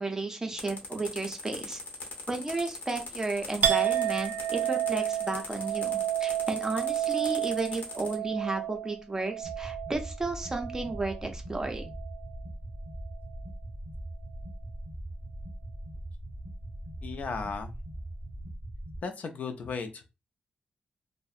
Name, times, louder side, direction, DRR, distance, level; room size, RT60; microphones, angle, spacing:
voice 1, 0.0-1.8 2.3-11.8, right 3 dB, 20° right, 4 dB, 0.5 m, -33 dB
sound 1, 0.6-8.1, left 3 dB, 90° left, 0.8 m, -40 dB
Chink clink, 3.6-11.3 11.6-12.3, right 11 dB, 75° right, 0.3 m, -31 dB
sound 2, 9.4-19.0, right 1 dB, 20° left, 0.6 m, -41 dB
voice 2, 17.0-17.7 19.0-20.2, left 5 dB, 60° left, 8 dB, 0.4 m, -36 dB
2.6 x 2.0 x 2.4 m, 0.27 s
wide cardioid pair, 145°, 3 cm